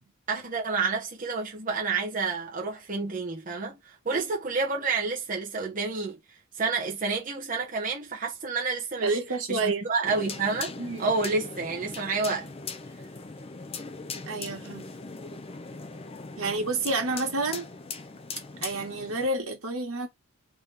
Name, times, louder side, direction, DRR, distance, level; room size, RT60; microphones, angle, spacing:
voice 1, 0.3-6.2 6.6-9.2 9.5-12.5 16.4-16.5, right 4 dB, 35° right, 1.1 m, -29 dB
voice 2, 9.0-9.9 10.8-11.1 14.3-14.9 16.4-17.7 18.6-20.1, right 3 dB, 80° right, 1.5 m, -29 dB
sound 1, 10.1-19.3, left 4 dB, 25° left, 0.5 m, -40 dB
3.5 x 2.9 x 3.4 m
head